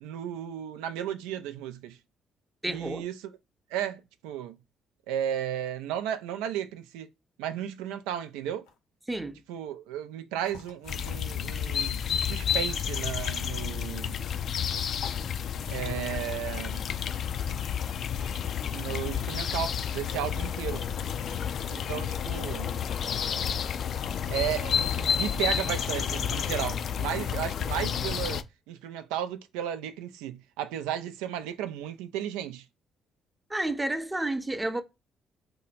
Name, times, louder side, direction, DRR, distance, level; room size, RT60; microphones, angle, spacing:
voice 1, 0.0-2.0 2.7-3.2 3.7-4.6 5.1-7.1 7.4-8.7 9.5-14.2 15.7-16.9 18.7-20.9 21.7-22.8 24.3-32.6, right 10 dB, 80° right, 0.4 m, -34 dB
voice 2, 2.6-3.1 9.1-9.4 33.5-34.8, right 1 dB, 15° right, 0.7 m, -30 dB
sound 1, 8.6-8.8 10.4-11.6 13.0-13.8 14.9-16.4 17.9-18.9 19.7-20.4 20.7-22.0, left 5 dB, 85° left, 0.8 m, -52 dB
sound 2, 10.9-28.4, left 8 dB, 60° left, 0.4 m, -30 dB
2.7 x 2.2 x 4.0 m
hypercardioid pair, 50°, 0 cm